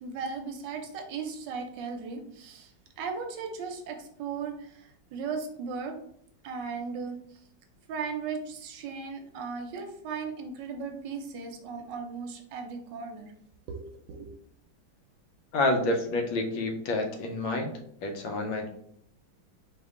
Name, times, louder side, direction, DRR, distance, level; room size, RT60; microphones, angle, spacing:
voice 1, 0.0-6.0 6.4-7.2 7.9-13.3 13.7-13.8 14.1-14.3, right 5 dB, 75° right, 4 dB, 1.2 m, -37 dB
voice 2, 15.5-17.7 18.0-18.7, left 2 dB, 80° left, 4 dB, 1.5 m, -28 dB
4.2 x 2.9 x 3.6 m, 0.69 s
omnidirectional pair, 2.1 m